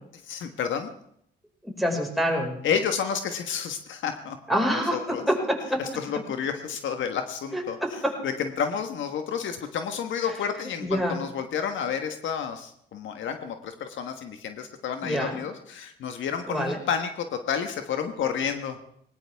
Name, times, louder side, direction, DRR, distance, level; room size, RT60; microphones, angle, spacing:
voice 1, 0.2-0.9 2.6-5.2 5.8-18.8, left 7 dB, 75° left, 6 dB, 1.4 m, -30 dB
voice 2, 1.8-2.6 4.5-5.0 5.3-5.8 7.5-8.1 10.8-11.2 15.0-15.4 16.5-16.8, equal, ahead, -1 dB, 5.3 m, -26 dB
19.5 x 19.0 x 3.5 m, 0.71 s
cardioid pair, 90°, 20 cm